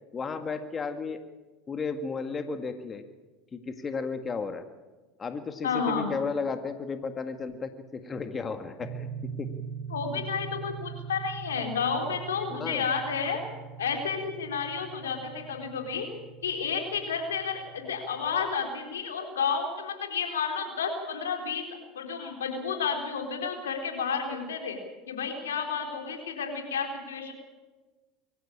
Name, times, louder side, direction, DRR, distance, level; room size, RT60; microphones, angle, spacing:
voice 1, 0.1-1.2 1.7-3.0 3.5-4.6 5.2-9.5 12.6-12.9, left 5 dB, 30° left, 8 dB, 1.8 m, -34 dB
voice 2, 5.6-6.1 9.9-13.4 13.8-16.1 16.4-21.7 21.9-24.8 25.1-27.3, left 6 dB, 85° left, 4 dB, 4.1 m, -31 dB
sound 1, 8.8-18.5, right 7 dB, 30° right, 7.3 m, -42 dB
23.5 x 15.0 x 8.7 m, 1.2 s
hypercardioid pair, 80°, 0 cm